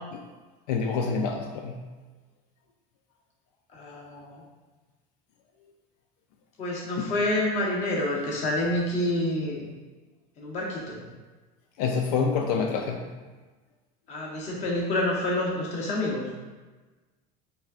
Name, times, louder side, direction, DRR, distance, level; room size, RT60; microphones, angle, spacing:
voice 1, 0.7-1.8 7.0-7.1 11.8-13.1, left 5 dB, 85° left, 2 dB, 0.4 m, -27 dB
voice 2, 3.7-4.4 6.6-9.7 10.4-11.0 14.1-16.3, left 1 dB, 35° left, -3 dB, 1.0 m, -28 dB
4.0 x 3.4 x 2.4 m, 1.3 s
cardioid pair, 155°, 19 cm